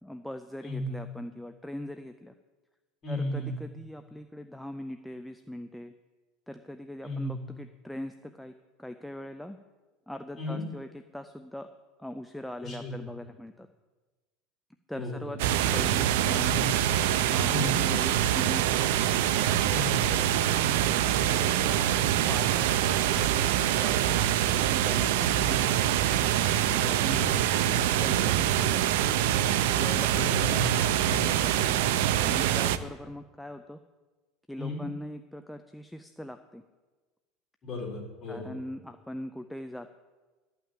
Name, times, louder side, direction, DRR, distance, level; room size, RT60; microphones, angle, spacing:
voice 1, 0.0-2.3 3.1-5.9 6.5-8.5 8.8-9.6 10.1-11.7 12.0-13.7 14.9-15.4 15.7-16.7 17.3-18.8 19.6-21.8 22.3-22.7 23.1-24.1 24.6-26.0 26.6-29.2 29.7-30.6 31.2-31.8 32.2-33.8 34.5-36.6 38.3-39.9, left 1 dB, ahead, 7 dB, 0.4 m, -41 dB
voice 2, 3.0-3.5 7.0-7.3 10.4-10.6 12.6-12.9 14.9-15.3 16.4-16.7 17.5-17.8 19.7-19.9 27.1-27.2 30.1-31.6 34.6-34.8 37.6-38.5, left 1 dB, 25° left, -4 dB, 4.2 m, -35 dB
sound 1, 15.4-32.8, right 11 dB, 80° right, 0.6 m, -25 dB
12.5 x 5.8 x 9.0 m, 1.3 s
cardioid pair, 160°, 0 cm